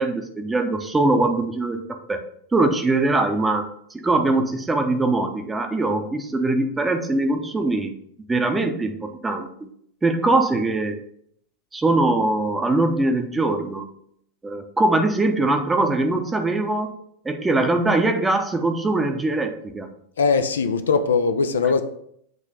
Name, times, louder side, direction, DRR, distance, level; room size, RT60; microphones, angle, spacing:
voice 1, 0.0-1.8 2.1-2.2 2.5-7.9 8.3-9.7 10.0-11.0 11.7-13.9 14.4-17.0 17.2-19.9, right 2 dB, 10° right, 0.7 m, -22 dB
voice 2, 20.2-21.8, left 5 dB, 65° left, 0.4 m, -20 dB
7.7 x 3.2 x 4.9 m
figure-of-eight pair, 90°, 0 cm